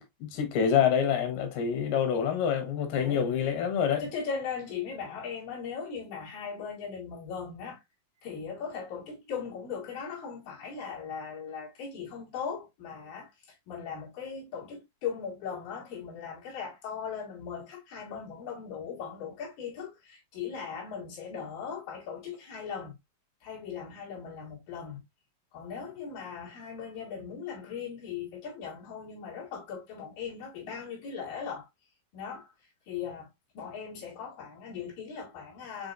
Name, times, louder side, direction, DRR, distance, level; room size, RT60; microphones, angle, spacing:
voice 1, 0.0-4.0, left 8 dB, 85° left, 3.1 m, -27 dB
voice 2, 2.9-3.3 4.0-7.8 8.2-23.0 23.4-25.0 25.5-31.7 32.1-32.5 32.9-33.3 33.5-35.9, left 6 dB, 65° left, 3.6 m, -39 dB
6.8 x 3.0 x 2.4 m
omnidirectional pair, 4.3 m